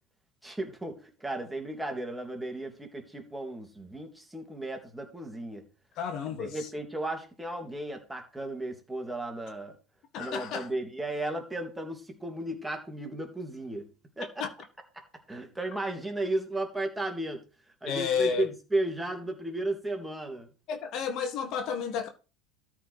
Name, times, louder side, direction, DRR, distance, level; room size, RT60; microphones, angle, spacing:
voice 1, 0.4-5.6 6.4-9.8 10.2-13.9 14.2-14.4 15.3-17.4 17.8-20.5, right 1 dB, 10° right, 2.9 m, -34 dB
voice 2, 6.0-6.7 10.1-10.7 14.4-14.5 17.9-18.5 20.7-22.1, left 6 dB, 55° left, 1.7 m, -31 dB
13.0 x 4.6 x 5.0 m
hypercardioid pair, 75°, 0 cm